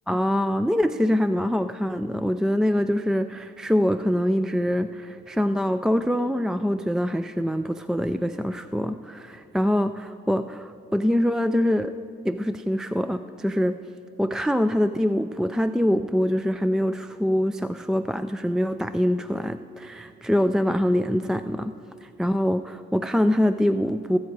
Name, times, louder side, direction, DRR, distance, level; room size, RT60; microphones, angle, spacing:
voice 1, 0.1-11.9 12.2-13.8 14.2-21.7 22.0-24.2, equal, 5° right, 10 dB, 0.3 m, -24 dB
18.5 x 8.2 x 4.8 m, 2.9 s
cardioid pair, 90°, 20 cm